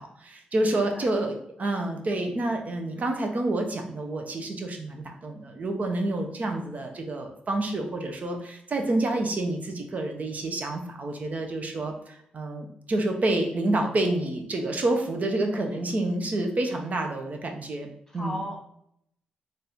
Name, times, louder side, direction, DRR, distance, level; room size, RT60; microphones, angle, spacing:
voice 1, 0.0-17.9 18.1-18.4, right 2 dB, 50° right, 3 dB, 0.8 m, -28 dB
voice 2, 0.6-1.1 15.5-15.9 18.1-18.6, equal, 5° left, 0 dB, 1.5 m, -38 dB
4.2 x 2.7 x 3.5 m, 0.73 s
supercardioid pair, 55°, 3 cm